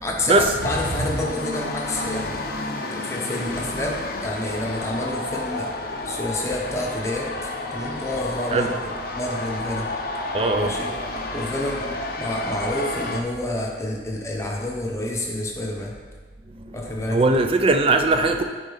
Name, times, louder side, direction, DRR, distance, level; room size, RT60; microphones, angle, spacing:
voice 1, 0.0-2.4 2.9-5.7 6.0-9.9 10.6-10.9 11.3-11.9 12.2-15.9 16.7-17.3, left 1 dB, 15° left, -1 dB, 0.8 m, -29 dB
sound 1, 0.6-13.2, left 2 dB, 55° left, 0.6 m, -31 dB
voice 2, 10.3-10.7 17.1-18.4, right 2 dB, 30° right, 6 dB, 0.4 m, -19 dB
8.2 x 3.8 x 4.0 m, 1.4 s
head